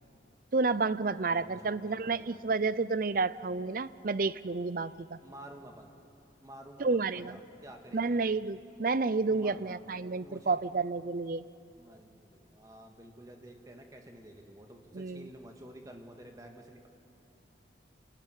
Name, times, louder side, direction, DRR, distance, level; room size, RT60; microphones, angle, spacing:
voice 1, 0.5-5.2 6.8-7.4 7.9-11.4 14.9-15.3, right 4 dB, 50° right, 16 dB, 0.6 m, -30 dB
voice 2, 1.3-2.4 5.2-5.9 6.4-8.3 9.3-9.8 10.2-10.6 11.7-16.9, right 1 dB, 20° right, 3 dB, 2.1 m, -51 dB
28.0 x 18.0 x 9.9 m, 2.8 s
head